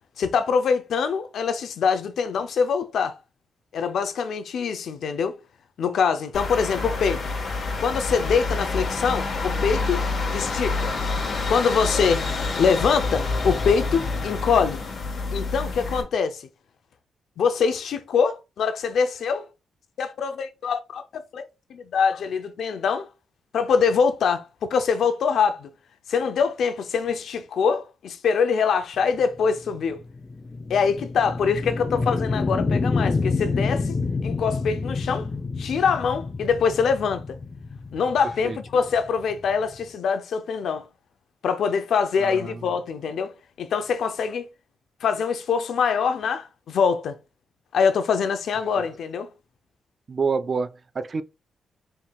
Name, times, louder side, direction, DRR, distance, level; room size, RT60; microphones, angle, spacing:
voice 1, 0.2-3.2 3.7-5.4 5.8-7.2 7.8-10.0 10.3-10.9 11.5-12.2 12.6-14.8 15.3-16.4 17.4-19.5 20.0-23.1 23.5-25.7 26.1-30.0 30.7-35.3 35.6-37.2 37.9-40.8 41.4-44.5 45.0-47.2 47.7-49.3, left 6 dB, 75° left, 0.6 m, -24 dB
sound 1, 6.3-16.0, left 3 dB, 55° left, 1.4 m, -27 dB
sound 2, 29.2-39.9, left 4 dB, 30° left, 0.7 m, -28 dB
voice 2, 42.2-42.5 50.1-51.2, right 5 dB, 45° right, 0.4 m, -27 dB
4.3 x 3.6 x 2.4 m
cardioid pair, 70°, 0 cm